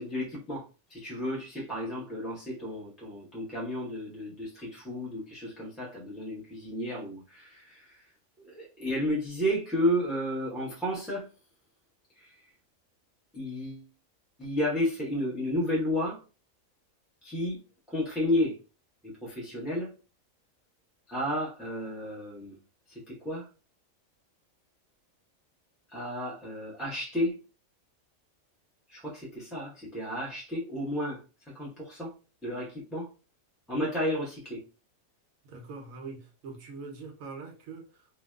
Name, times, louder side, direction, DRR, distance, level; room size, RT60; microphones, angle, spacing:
voice 1, 0.0-8.1 8.5-11.3 12.2-12.3 13.3-13.8 14.4-16.2 17.2-17.6 17.9-18.6 19.0-19.9 21.1-22.6 22.9-23.5 25.9-27.4 28.9-31.2 31.5-32.1 32.4-33.1 33.7-34.6, left 1 dB, ahead, 0.8 m, -32 dB
voice 2, 35.4-38.2, right 4 dB, 85° right, 1.2 m, -43 dB
3.0 x 2.7 x 2.2 m
omnidirectional pair, 1.4 m